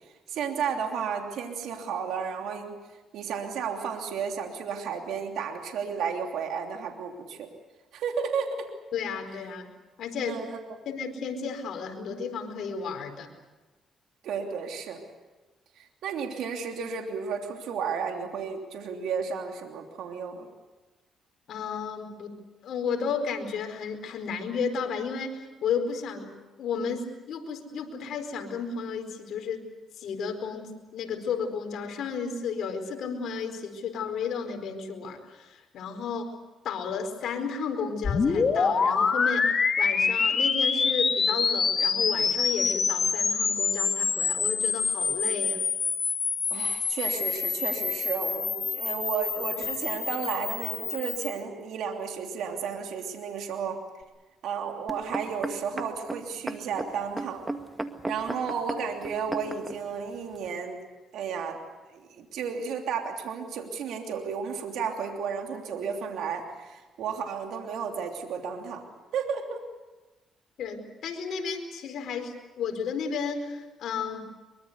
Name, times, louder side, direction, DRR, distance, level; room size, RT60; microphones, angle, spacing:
voice 1, 0.3-2.7 3.1-7.5 7.9-8.7 10.3-10.6 14.2-15.0 15.8-20.5 46.5-53.8 54.4-57.4 58.0-60.8 61.1-61.6 61.9-68.8 69.1-69.6, right 6 dB, 80° right, 3 dB, 3.0 m, -33 dB
voice 2, 8.9-9.7 10.0-10.4 10.8-13.3 21.5-22.4 22.6-26.3 26.6-29.7 30.0-36.3 36.6-39.5 39.8-45.6 70.6-74.3, left 6 dB, 70° left, 5 dB, 4.5 m, -33 dB
sound 1, 38.0-51.4, left 5 dB, 45° left, 2.5 m, -26 dB
sound 2, 54.9-59.8 60.5-60.6, right 2 dB, 10° right, 1.9 m, -34 dB
23.5 x 23.5 x 8.2 m, 1.2 s
cardioid pair, 90°, 0 cm